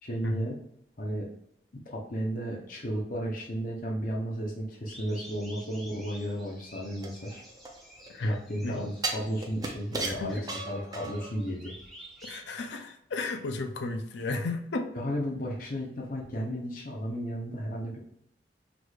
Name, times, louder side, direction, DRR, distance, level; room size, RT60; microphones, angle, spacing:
voice 1, 0.0-0.6 1.0-1.3 1.9-7.4 8.2-10.4 10.7-11.7 14.9-18.0, equal, 50° left, -2 dB, 0.8 m, -34 dB
sound 1, 4.9-12.4, right 1 dB, ahead, 1.0 m, -51 dB
sound 2, 7.0-8.2 9.0-11.4 11.8-11.9, right 3 dB, 20° right, 0.5 m, -35 dB
voice 2, 8.1-8.9 10.0-10.5 12.2-14.9, left 2 dB, 75° left, 6 dB, 0.5 m, -34 dB
6.1 x 3.2 x 2.3 m, 0.72 s
head